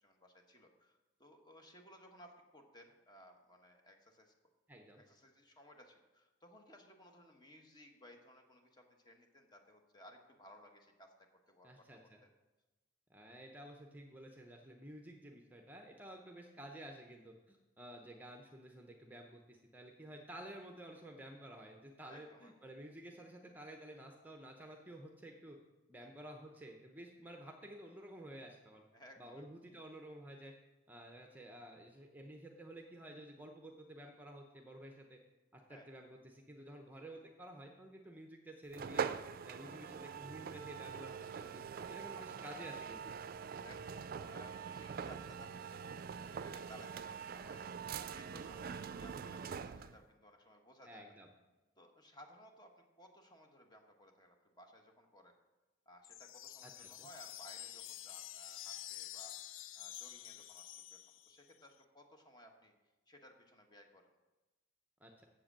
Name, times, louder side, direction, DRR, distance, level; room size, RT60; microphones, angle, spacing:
voice 1, 0.0-4.3 5.0-11.9 12.2-12.3 22.1-22.5 26.0-26.1 28.9-29.4 35.7-35.9 39.6-39.7 42.1-42.3 43.6-51.0 51.8-55.3 55.8-62.7 63.1-64.1, equal, 20° left, 3 dB, 1.3 m, -60 dB
voice 2, 4.7-5.0 11.6-12.2 13.1-25.6 25.9-28.8 29.2-30.5 30.9-35.2 35.5-39.1 39.4-43.2 50.8-51.3 56.6-57.1 65.0-65.3, right 1 dB, 10° right, 2 dB, 0.8 m, -52 dB
sound 1, 38.7-50.0, right 6 dB, 50° right, 0.4 m, -44 dB
sound 2, 56.0-61.5, left 13 dB, 85° left, 0.5 m, -49 dB
7.8 x 7.4 x 7.4 m, 1.1 s
head